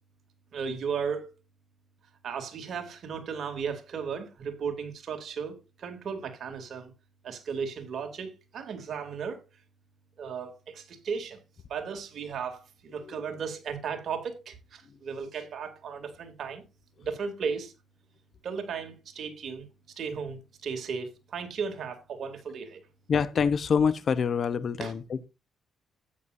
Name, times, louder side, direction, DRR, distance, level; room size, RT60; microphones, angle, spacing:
voice 1, 0.5-1.3 2.2-6.9 7.2-9.4 10.2-11.4 11.7-16.6 17.0-17.7 18.4-19.7 20.0-22.8 24.8-24.9, right 6 dB, 60° right, 2.8 m, -35 dB
voice 2, 23.1-25.3, left 6 dB, 50° left, 0.8 m, -26 dB
12.5 x 9.3 x 2.6 m
cardioid pair, 90°, 0 cm